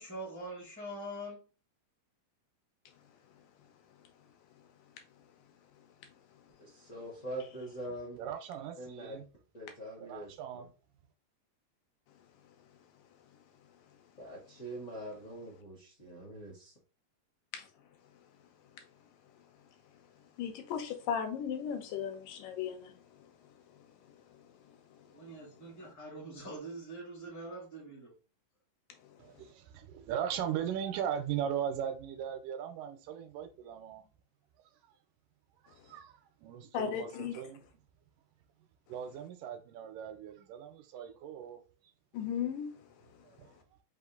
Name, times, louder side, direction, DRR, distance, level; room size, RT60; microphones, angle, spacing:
voice 1, 0.0-1.4 25.1-28.1, right 1 dB, 20° left, 0.5 m, -44 dB
voice 2, 6.6-8.2 8.8-9.2 9.5-10.7 14.2-16.7, right 1 dB, 50° left, 0.8 m, -43 dB
voice 3, 7.9-9.3 10.0-10.7 29.2-34.0 35.6-37.6 38.9-41.6 43.2-43.5, right 9 dB, 85° right, 2.3 m, -39 dB
voice 4, 20.4-25.9 29.0-29.4 35.8-35.9 36.7-37.4 42.1-43.5, left 8 dB, 80° left, 2.4 m, -39 dB
5.3 x 2.6 x 3.8 m
omnidirectional pair, 3.8 m